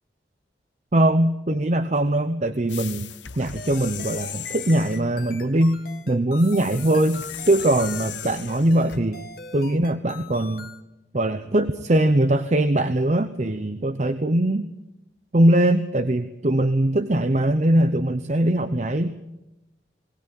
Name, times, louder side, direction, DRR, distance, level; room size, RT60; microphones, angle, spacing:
voice 1, 0.9-3.1 3.4-5.8 6.1-9.2 9.5-10.7 11.1-14.7 15.3-19.1, right 1 dB, 40° right, 10 dB, 0.8 m, -21 dB
sound 1, 2.7-5.1 6.4-9.0, left 10 dB, 90° left, 1.1 m, -37 dB
sound 2, 3.6-10.8, left 3 dB, 55° left, 1.9 m, -42 dB
20.5 x 18.5 x 8.9 m, 0.95 s
head